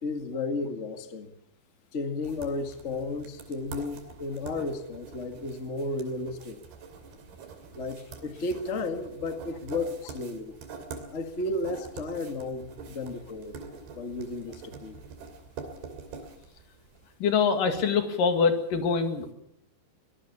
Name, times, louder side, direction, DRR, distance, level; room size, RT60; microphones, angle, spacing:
voice 1, 0.0-1.3 1.9-6.6 7.8-10.5 11.1-13.6 13.9-15.0, left 2 dB, 80° left, 7 dB, 0.6 m, -33 dB
sound 1, 2.2-17.0, right 5 dB, 65° right, 4.6 m, -45 dB
voice 2, 17.2-19.3, left 5 dB, 55° left, 7 dB, 3.4 m, -24 dB
24.0 x 19.0 x 7.2 m, 0.77 s
omnidirectional pair, 4.9 m